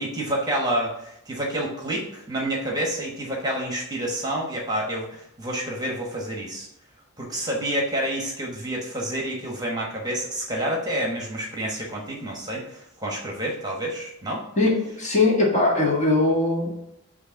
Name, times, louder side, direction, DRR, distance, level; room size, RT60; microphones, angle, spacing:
voice 1, 0.0-6.7 7.2-14.4, right 1 dB, 20° right, -1 dB, 1.2 m, -28 dB
voice 2, 14.6-16.7, left 2 dB, 35° left, -2 dB, 1.7 m, -20 dB
7.8 x 2.8 x 5.7 m, 0.81 s
head